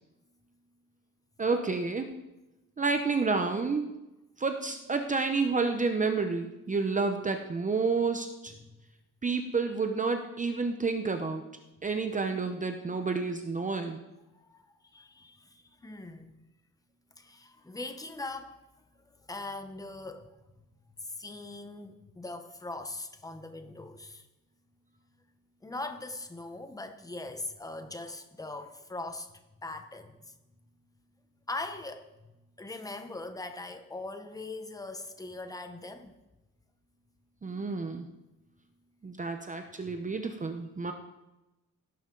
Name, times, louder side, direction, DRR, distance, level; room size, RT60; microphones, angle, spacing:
voice 1, 1.4-2.1 2.8-3.9 4.4-8.5 9.2-11.4 11.8-14.0 37.4-38.1 39.0-40.9, right 4 dB, 25° right, 0.7 m, -30 dB
voice 2, 14.3-16.4 17.2-18.6 19.1-20.4 21.0-24.3 25.6-29.3 29.6-30.3 31.5-36.1 39.9-40.0, left 2 dB, 10° left, 0.9 m, -41 dB
17.5 x 11.0 x 3.9 m
wide cardioid pair, 175°, 33 cm